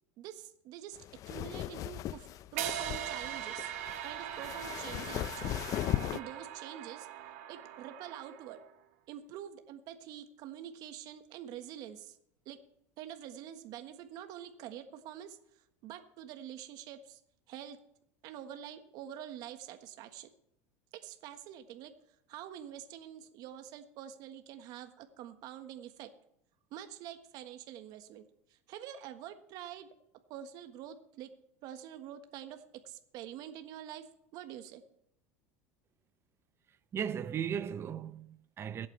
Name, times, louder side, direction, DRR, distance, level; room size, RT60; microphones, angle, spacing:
voice 1, 0.2-1.0 1.3-3.7 4.0-5.6 6.1-7.1 7.5-8.6 9.1-12.2 12.4-12.6 13.0-15.4 15.8-17.2 17.5-17.8 18.2-20.3 20.9-21.9 22.3-26.1 26.7-28.2 28.5-29.9 30.3-31.3 31.6-34.0 34.3-34.8, right 10 dB, 60° right, 1.4 m, -46 dB
sound 1, 0.9-6.2, left 13 dB, 50° left, 0.5 m, -37 dB
sound 2, 2.6-8.7, right 11 dB, 75° right, 1.9 m, -41 dB
voice 2, 36.9-38.9, right 8 dB, 35° right, 0.8 m, -36 dB
23.0 x 8.7 x 3.3 m
supercardioid pair, 100°, 8 cm